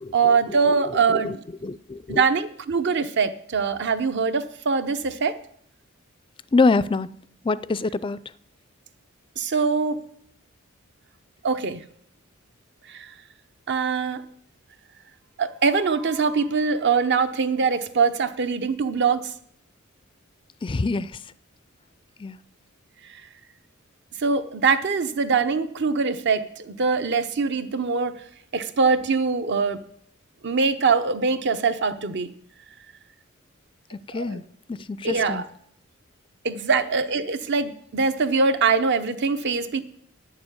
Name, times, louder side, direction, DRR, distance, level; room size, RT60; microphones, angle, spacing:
voice 1, 0.1-1.4 2.1-5.4 9.4-10.0 11.4-11.8 12.9-13.1 13.7-14.2 15.4-19.3 23.1-23.2 24.2-28.2 28.5-29.8 30.4-32.3 34.1-34.4 35.0-35.5 36.4-39.8, right 5 dB, 55° right, 0.8 m, -23 dB
voice 2, 1.6-2.2 6.5-7.1 7.4-8.2 20.6-21.1 22.2-22.4 33.9-34.4 34.7-35.4, left 3 dB, 25° left, 0.4 m, -24 dB
9.8 x 7.0 x 9.2 m
head